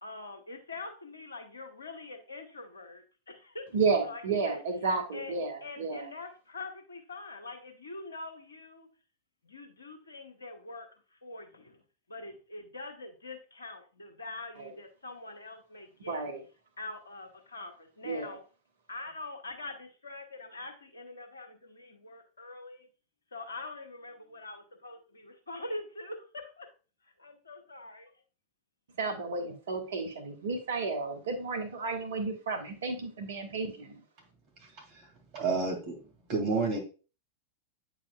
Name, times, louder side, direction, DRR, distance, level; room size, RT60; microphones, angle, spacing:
voice 1, 0.0-3.7 4.0-4.6 5.1-5.3 5.6-8.9 9.4-11.8 12.1-16.3 16.8-18.4 18.9-22.9 23.3-26.7 27.0-28.1, left 2 dB, 75° left, 6 dB, 1.1 m, -44 dB
voice 2, 3.7-6.1 14.6-14.7 16.1-16.4 18.0-18.4 29.0-34.0, right 4 dB, 65° right, 4 dB, 1.2 m, -32 dB
voice 3, 35.3-35.9 36.3-36.8, right 4 dB, 45° right, 1 dB, 2.2 m, -29 dB
8.5 x 4.8 x 2.3 m, 0.35 s
figure-of-eight pair, 90°, 0 cm